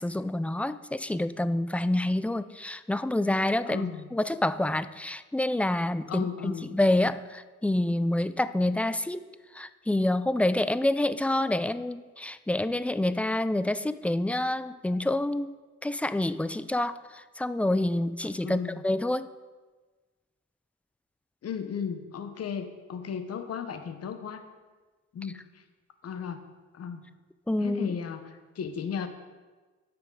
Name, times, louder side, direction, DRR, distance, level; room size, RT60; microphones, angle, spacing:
voice 1, 0.0-9.3 9.5-15.5 15.8-19.3 27.5-28.0, left 1 dB, 5° left, 13 dB, 0.3 m, -27 dB
voice 2, 3.7-4.1 6.1-6.7 18.4-18.8 21.4-24.5 25.1-25.6 26.0-26.4 26.7-27.0 27.6-29.1, left 7 dB, 55° left, 8 dB, 1.1 m, -35 dB
17.0 x 5.9 x 3.9 m, 1.3 s
cardioid pair, 90°, 30 cm